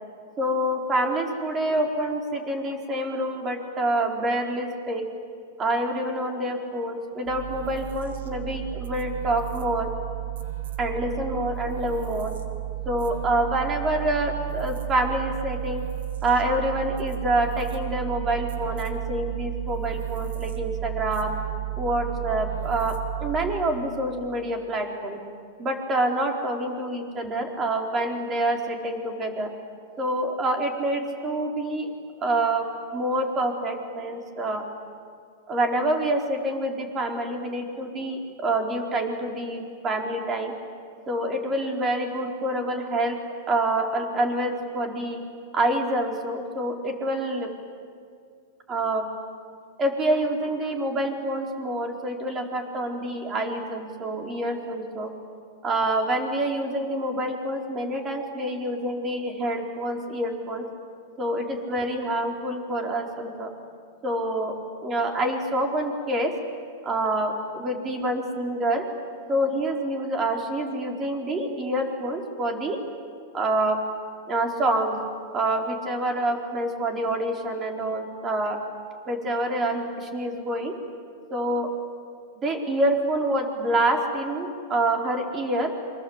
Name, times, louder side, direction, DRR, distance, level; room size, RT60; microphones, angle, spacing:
voice 1, 0.4-5.0 5.6-9.9 10.8-12.3 12.9-15.8 16.2-21.3 21.8-22.9 23.2-25.2 25.6-29.5 30.0-31.9 32.2-32.6 32.9-34.6 35.5-40.5 41.1-43.2 43.5-45.2 45.5-47.5 48.7-49.0 49.8-55.1 55.6-60.6 61.2-63.5 64.0-64.5 64.8-66.3 66.8-68.8 69.3-72.8 73.3-73.8 74.3-75.0 75.3-78.6 79.1-80.7 81.3-81.7 82.4-85.7, right 1 dB, 25° right, 2 dB, 4.5 m, -27 dB
sound 1, 7.3-23.8, right 14 dB, 80° right, 2.7 m, -33 dB
28.5 x 24.5 x 8.2 m, 2.2 s
hypercardioid pair, 135°, 0 cm